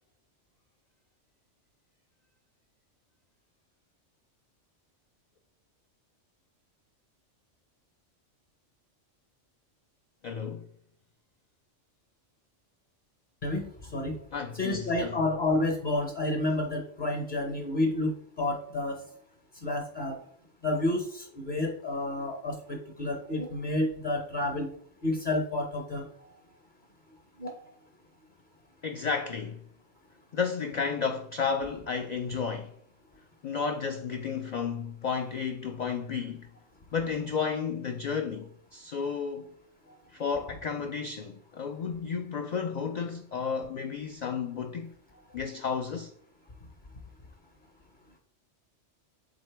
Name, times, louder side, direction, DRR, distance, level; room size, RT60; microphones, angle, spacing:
voice 1, 10.2-10.6 14.3-15.2 28.8-29.6 30.3-32.7 33.4-36.5 36.9-39.5 40.1-44.9 45.3-46.1, left 6 dB, 75° left, 0.4 m, -32 dB
voice 2, 13.4-14.2 14.5-19.0 19.6-20.2 20.6-24.7 25.0-26.4 27.4-27.6, left 2 dB, 45° left, 0.9 m, -30 dB
7.7 x 3.6 x 3.3 m
omnidirectional pair, 1.3 m